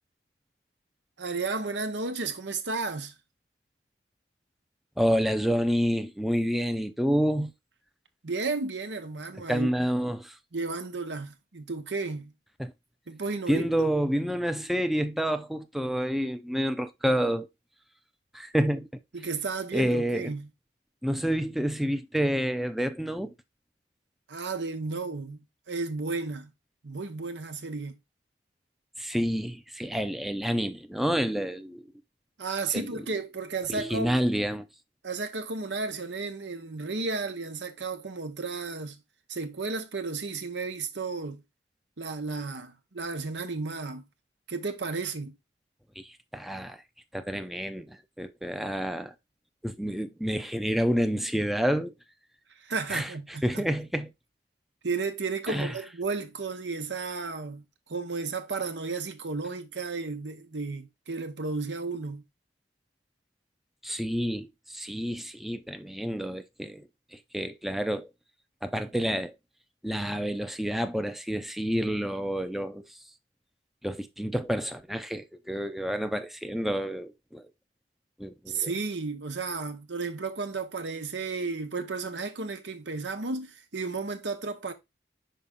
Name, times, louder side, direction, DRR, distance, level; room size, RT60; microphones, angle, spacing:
voice 1, 1.2-3.1 8.2-9.7 10.5-12.3 13.1-13.9 19.1-20.5 24.3-26.5 26.8-27.9 32.4-34.1 35.0-39.0 39.3-41.4 42.0-44.0 44.5-45.4 52.6-53.6 54.8-57.6 57.9-62.2 78.5-84.7, right 4 dB, 90° right, 1.0 m, -33 dB
voice 2, 5.0-7.5 9.5-10.4 12.6-12.7 13.5-17.5 18.3-18.9 19.7-20.3 21.0-23.3 29.0-31.9 32.7-32.9 33.7-34.7 46.0-46.8 47.1-49.1 49.6-51.9 52.9-54.1 55.5-55.7 63.8-68.1 68.6-69.3 69.8-72.8 73.8-77.4 78.2-78.7, equal, ahead, 0.4 m, -29 dB
5.6 x 5.2 x 3.5 m
head